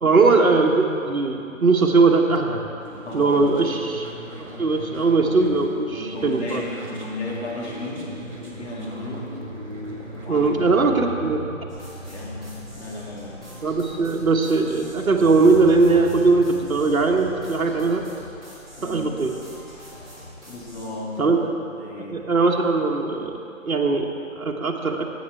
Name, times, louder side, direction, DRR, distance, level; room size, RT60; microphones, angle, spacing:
voice 1, 0.0-2.7 3.1-6.6 10.3-11.4 13.6-18.1 18.8-19.3 21.2-21.4 22.0-23.3 23.7-25.0, right 3 dB, 80° right, 2 dB, 1.3 m, -20 dB
sound 1, 2.8-10.5, right 1 dB, 55° right, 2.9 m, -38 dB
voice 2, 3.0-3.4 5.9-9.3 10.2-10.5 11.2-11.4 12.1-13.5 18.8-19.1 20.5-22.3, left 2 dB, 50° left, -5 dB, 2.6 m, -35 dB
sound 2, 9.4-17.9, equal, 25° left, 1.0 m, -40 dB
sound 3, 11.7-20.9, equal, ahead, 2.2 m, -44 dB
15.5 x 8.1 x 3.4 m, 2.7 s
figure-of-eight pair, 160°, 42 cm